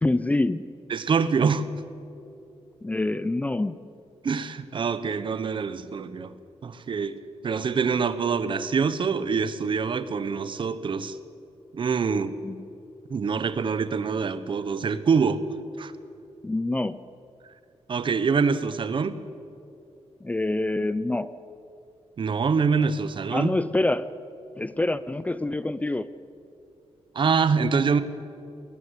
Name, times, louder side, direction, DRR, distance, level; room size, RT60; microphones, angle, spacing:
voice 1, 0.0-0.7 2.8-3.8 12.4-12.7 16.4-17.0 20.2-21.3 23.3-24.1 24.6-26.1, left 2 dB, 15° left, 15 dB, 0.5 m, -26 dB
voice 2, 0.9-1.7 4.2-6.3 6.6-7.2 7.4-11.2 11.7-12.3 13.1-15.4 15.8-15.9 17.9-19.2 22.2-23.6 27.1-28.0, right 5 dB, 50° right, 14 dB, 1.1 m, -25 dB
21.0 x 19.0 x 8.3 m, 2.7 s
wide cardioid pair, 150°, 11 cm